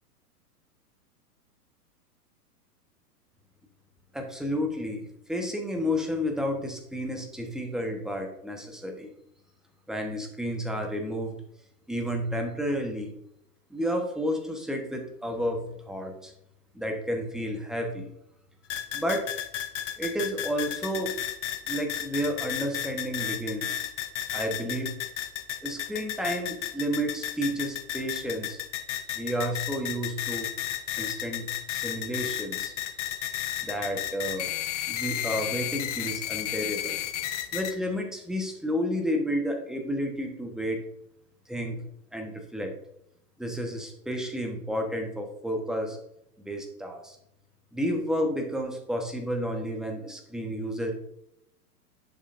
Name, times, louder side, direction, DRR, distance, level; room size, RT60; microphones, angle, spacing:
voice 1, 4.1-9.1 9.9-11.4 11.9-13.1 13.7-16.3 16.7-18.1 18.9-19.3 20.0-21.2 21.7-23.8 24.3-25.0 25.6-28.6 29.1-30.5 31.0-32.7 33.6-34.5 34.9-37.0 37.5-40.8 41.5-41.8 42.1-42.7 43.4-46.0 46.4-47.2 47.7-50.9, equal, ahead, 2 dB, 1.1 m, -31 dB
sound 1, 18.7-37.7, left 12 dB, 50° left, 0.9 m, -33 dB
11.0 x 6.7 x 2.6 m, 0.76 s
figure-of-eight pair, 115°, 47 cm